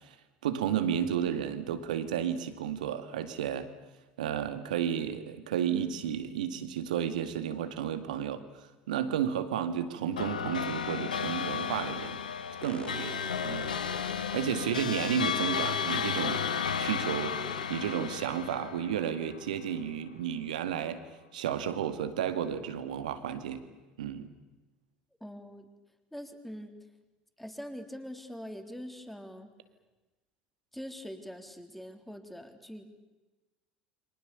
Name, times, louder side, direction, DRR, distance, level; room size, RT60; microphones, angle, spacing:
voice 1, 0.4-3.7 4.2-8.4 8.9-12.2 12.6-13.7 14.0-16.4 16.8-17.4 17.7-21.0 21.3-23.6 24.0-24.3, right 9 dB, 75° right, 10 dB, 2.1 m, -32 dB
sound 1, 10.2-19.8, left 7 dB, 85° left, 1.2 m, -33 dB
sound 2, 11.5-11.9 12.6-14.5 15.3-17.0 17.4-17.7, left 4 dB, 20° left, 1.9 m, -45 dB
voice 2, 25.2-25.7 26.1-26.8 27.4-29.5 30.7-32.8, equal, 5° left, 6 dB, 3.6 m, -43 dB
29.5 x 24.5 x 7.0 m, 1.1 s
figure-of-eight pair, 65°, 4 cm